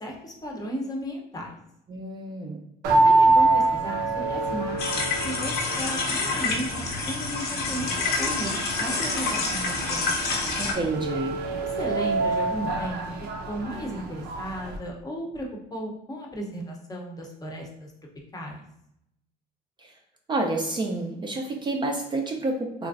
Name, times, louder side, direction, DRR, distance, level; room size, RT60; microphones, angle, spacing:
voice 1, 0.0-1.6 2.9-7.9 8.2-8.5 8.8-10.1 11.6-13.1 13.5-17.9 18.3-18.6, equal, 20° left, 0 dB, 0.6 m, -35 dB
voice 2, 1.9-2.6 10.6-11.4 19.8-19.9 20.3-22.9, right 2 dB, 25° right, 2 dB, 0.4 m, -29 dB
sound 1, 2.8-14.8, right 2 dB, 80° right, 0.5 m, -26 dB
sound 2, 4.8-10.7, left 4 dB, 75° left, 0.7 m, -28 dB
3.0 x 2.4 x 2.4 m, 0.78 s
cardioid pair, 110°, 17 cm